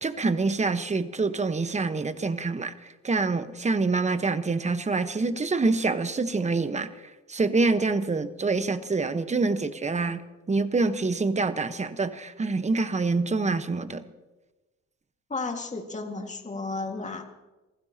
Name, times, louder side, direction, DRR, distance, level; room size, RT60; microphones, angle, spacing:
voice 1, 0.0-10.2 10.5-14.1, right 3 dB, 25° right, 10 dB, 1.1 m, -26 dB
voice 2, 15.3-17.2, left 3 dB, 25° left, 3 dB, 1.8 m, -33 dB
29.0 x 15.5 x 2.9 m, 1.1 s
cardioid pair, 90°, 30 cm